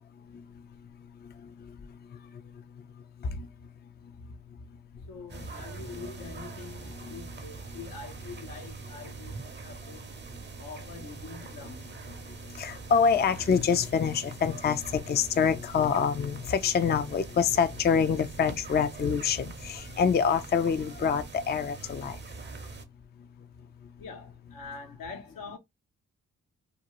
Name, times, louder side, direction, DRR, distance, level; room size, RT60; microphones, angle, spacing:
voice 1, 1.2-1.8 2.1-2.4 3.2-3.5 5.4-5.5 5.9-6.3 6.8-7.4 7.7-7.8 11.6-11.7 12.1-22.2, left 6 dB, 30° left, 0.4 m, -27 dB
voice 2, 5.1-10.0 10.6-11.9 24.0-25.6, left 5 dB, 75° left, 0.8 m, -44 dB
sound 1, 5.3-22.9, right 4 dB, 30° right, 0.6 m, -43 dB
2.6 x 2.3 x 2.9 m
supercardioid pair, 40°, 35 cm